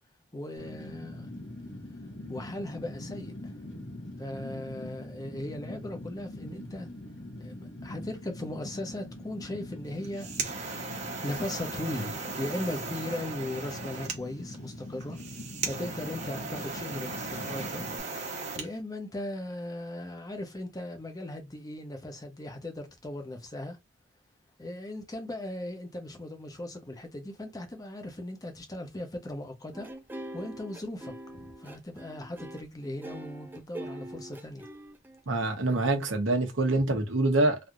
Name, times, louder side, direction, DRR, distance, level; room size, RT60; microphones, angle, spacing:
voice 1, 0.3-1.3 2.3-3.6 4.2-6.9 7.4-10.4 11.2-15.2 15.6-17.9 18.6-23.8 24.6-29.9 30.3-34.7, left 1 dB, 20° left, 0.7 m, -38 dB
Fire, 0.6-18.0, left 1 dB, 65° left, 1.2 m, -43 dB
sound 1, 9.9-18.7, right 4 dB, 40° right, 0.8 m, -37 dB
sound 2, 29.7-35.5, right 1 dB, 10° right, 0.5 m, -43 dB
voice 2, 35.3-37.6, right 2 dB, 90° right, 0.9 m, -25 dB
3.4 x 2.7 x 2.4 m
head